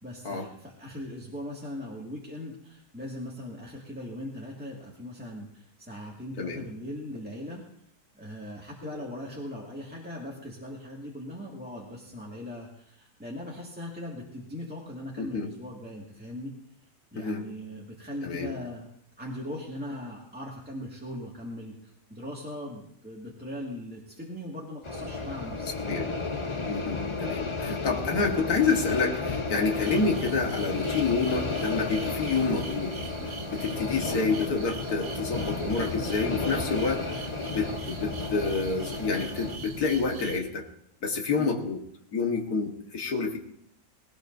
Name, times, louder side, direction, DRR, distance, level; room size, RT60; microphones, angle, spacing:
voice 1, 0.0-7.6 8.2-16.5 17.1-18.9 19.2-25.7 41.4-41.6, left 1 dB, 5° right, -3 dB, 1.9 m, -39 dB
voice 2, 15.2-15.5 17.2-17.5 18.2-18.5 25.8-26.1 26.7-33.0 33.5-37.1 37.4-40.7 41.0-41.8 42.1-43.4, left 4 dB, 70° left, 3 dB, 2.0 m, -28 dB
sound 1, 24.8-39.6, left 3 dB, 25° left, 0.7 m, -33 dB
sound 2, 29.8-40.4, right 3 dB, 90° right, 2.0 m, -41 dB
19.0 x 18.0 x 2.7 m, 0.70 s
omnidirectional pair, 1.6 m